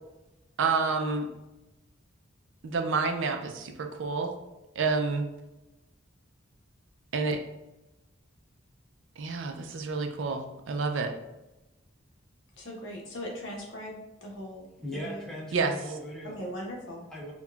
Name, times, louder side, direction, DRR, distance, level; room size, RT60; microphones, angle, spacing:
voice 1, 0.6-1.3 2.6-4.3 4.8-5.2 7.1-7.4 9.2-11.1 15.5-15.7, right 4 dB, 70° right, 5 dB, 0.4 m, -29 dB
voice 2, 12.6-14.7 15.0-15.2 16.4-17.1, equal, 65° left, -2 dB, 1.0 m, -39 dB
voice 3, 14.8-16.4 17.1-17.3, equal, ahead, -5 dB, 0.7 m, -39 dB
5.3 x 2.3 x 2.3 m, 1.0 s
head